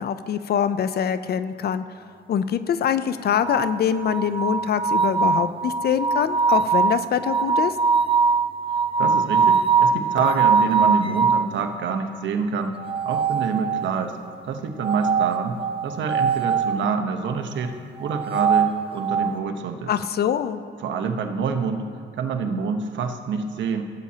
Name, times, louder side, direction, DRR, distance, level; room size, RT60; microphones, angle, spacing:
voice 1, 0.0-1.8 2.3-7.8 19.9-20.6, left 8 dB, 55° left, 12 dB, 0.5 m, -24 dB
sound 1, 3.4-11.5 12.8-14.1 14.8-16.8 18.0-19.4, right 5 dB, 30° right, 0.5 m, -22 dB
voice 2, 9.0-12.8 13.0-14.2 14.5-15.6 15.8-17.7 18.0-19.9 20.8-21.9 22.2-23.8, right 5 dB, 70° right, 6 dB, 1.0 m, -26 dB
17.0 x 8.6 x 2.8 m, 2.2 s
cardioid pair, 90°, 20 cm